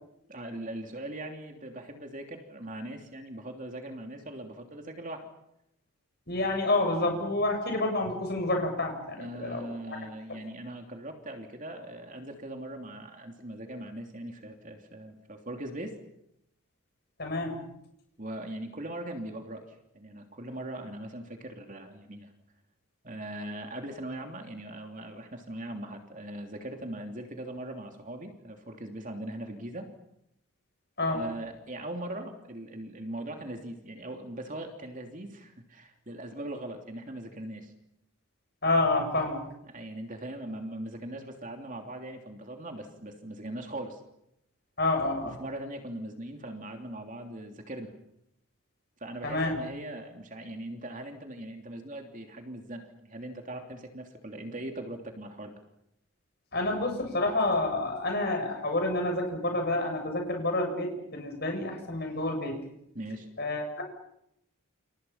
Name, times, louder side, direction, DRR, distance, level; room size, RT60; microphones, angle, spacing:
voice 1, 0.3-5.3 9.2-16.0 18.2-22.3 23.0-29.9 31.1-37.7 39.6-44.0 45.2-47.9 49.0-55.5 62.9-63.3, right 1 dB, 35° right, 4 dB, 3.1 m, -40 dB
voice 2, 6.3-10.0 17.2-17.7 31.0-31.2 38.6-39.5 44.8-45.4 49.2-49.6 56.5-62.6 63.4-63.8, left 2 dB, 45° left, 4 dB, 7.5 m, -29 dB
29.5 x 28.5 x 5.8 m, 0.79 s
head